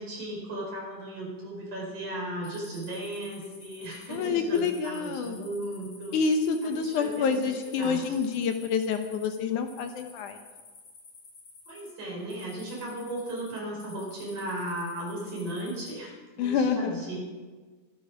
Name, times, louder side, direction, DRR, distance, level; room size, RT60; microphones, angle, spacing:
voice 1, 0.0-6.2 6.8-7.4 7.8-8.0 11.7-17.2, right 1 dB, 50° right, -3 dB, 6.2 m, -36 dB
sound 1, 2.4-15.9, left 4 dB, 50° left, 4.1 m, -52 dB
voice 2, 4.1-5.4 6.1-10.4 16.4-17.0, left 5 dB, 70° left, 6 dB, 1.9 m, -28 dB
25.0 x 11.0 x 5.0 m, 1.4 s
omnidirectional pair, 4.7 m